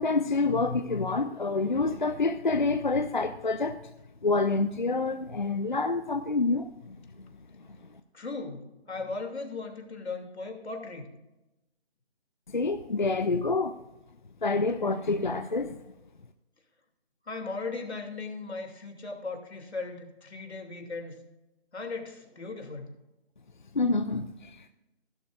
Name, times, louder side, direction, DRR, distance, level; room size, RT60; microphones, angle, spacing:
voice 1, 0.0-3.8 4.2-7.0 12.5-13.7 14.4-15.8 23.7-24.7, left 3 dB, 45° left, 8 dB, 0.5 m, -27 dB
voice 2, 8.1-11.1 17.3-21.2 21.7-22.9, left 3 dB, 80° left, 3 dB, 2.8 m, -37 dB
16.0 x 11.5 x 2.5 m, 0.97 s
hypercardioid pair, 180°, 32 cm